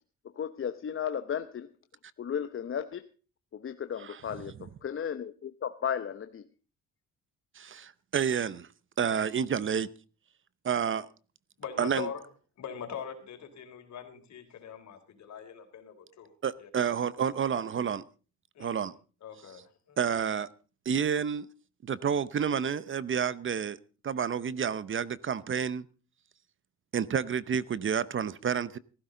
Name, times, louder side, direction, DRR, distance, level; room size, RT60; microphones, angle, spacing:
voice 1, 0.4-1.7 2.2-3.0 3.5-6.4, left 8 dB, 45° left, 10 dB, 0.9 m, -34 dB
voice 2, 7.6-8.7 9.0-9.9 10.6-11.1 11.8-12.1 16.4-18.0 18.6-18.9 20.0-20.5 20.9-21.5 21.8-23.8 24.0-25.8 26.9-28.8, right 7 dB, 40° right, 18 dB, 0.8 m, -29 dB
voice 3, 11.6-12.2 12.6-16.3 16.6-16.9 17.5-17.6 18.5-18.9 19.2-20.0, left 8 dB, 65° left, 5 dB, 3.8 m, -42 dB
16.0 x 15.0 x 3.9 m, 0.37 s
cardioid pair, 90°, 30 cm